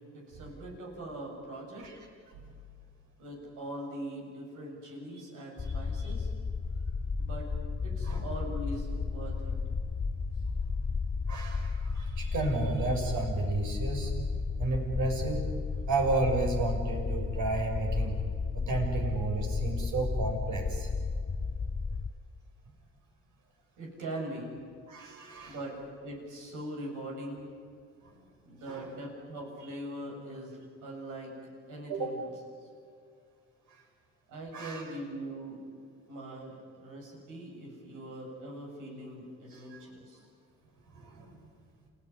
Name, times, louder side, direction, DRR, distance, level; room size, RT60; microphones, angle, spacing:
voice 1, 0.1-1.9 3.2-6.3 7.2-7.5 7.8-9.5 23.8-24.5 25.5-27.5 28.4-31.4 31.7-32.2 34.3-35.6 36.1-40.2, right 1 dB, 90° right, 0 dB, 7.9 m, -41 dB
sound 1, 5.6-22.1, left 4 dB, 25° left, 0.7 m, -33 dB
voice 2, 11.3-14.1 14.6-15.4 15.9-18.2 18.5-20.9 24.9-25.6 28.0-28.1 28.7-28.9 31.9-32.1 34.5-34.8 39.5-39.8 40.9-41.3, right 3 dB, 75° right, 2 dB, 6.6 m, -32 dB
28.5 x 17.0 x 9.8 m, 2.2 s
cardioid pair, 90°, 30 cm